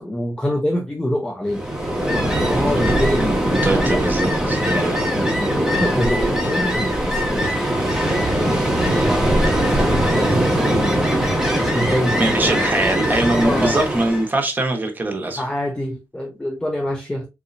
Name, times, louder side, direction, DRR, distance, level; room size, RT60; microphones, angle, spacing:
voice 1, 0.0-1.6 2.0-4.0 4.7-7.6 7.8-7.9 8.2-9.5 9.7-10.9 11.6-12.6 13.3-13.8 15.4-17.3, left 1 dB, 10° left, 0.7 m, -26 dB
Ocean, 1.5-14.3, right 1 dB, 10° right, 1.4 m, -20 dB
voice 2, 2.6-3.0 3.5-5.0 10.1-10.4 12.2-15.4, right 2 dB, 30° right, 1.1 m, -22 dB
4.1 x 2.7 x 2.6 m
cardioid pair, 90°, 6 cm